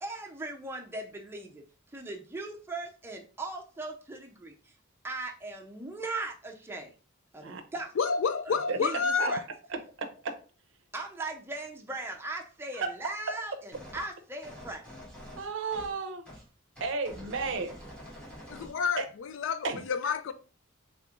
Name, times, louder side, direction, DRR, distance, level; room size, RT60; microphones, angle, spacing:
voice 1, 0.0-1.6 1.9-4.7 5.0-6.9 7.3-7.9 8.5-9.4 10.9-14.8, right 2 dB, 10° right, 0.5 m, -39 dB
voice 2, 8.0-9.4 18.5-20.3, left 5 dB, 65° left, 0.4 m, -29 dB
voice 3, 8.7-9.3 9.7-10.4 12.7-12.9 15.4-16.2 16.8-17.7 18.5-18.6 19.0-19.1 19.6-19.8, right 4 dB, 65° right, 0.6 m, -33 dB
sound 1, 13.7-14.1 14.4-16.0 16.3-16.5 16.8-18.8, equal, 5° left, 0.9 m, -47 dB
3.3 x 3.0 x 2.4 m
head